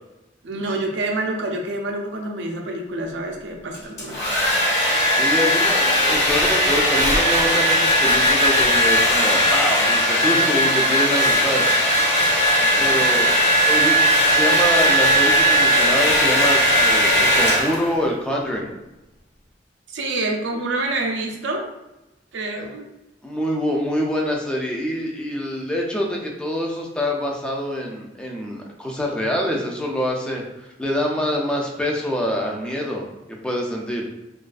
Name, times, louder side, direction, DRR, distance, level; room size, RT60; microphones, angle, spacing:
voice 1, 0.4-4.4 12.6-13.2 19.9-21.7 22.3-22.9, right 2 dB, 80° right, 2 dB, 0.4 m, -27 dB
Domestic sounds home sounds, 3.7-18.0, equal, 60° left, 1.0 m, -18 dB
voice 2, 5.1-11.7 12.8-13.3 13.6-18.7 22.6-22.7 23.2-34.1, equal, 5° left, -1 dB, 0.3 m, -25 dB
2.3 x 2.3 x 2.4 m, 0.96 s
head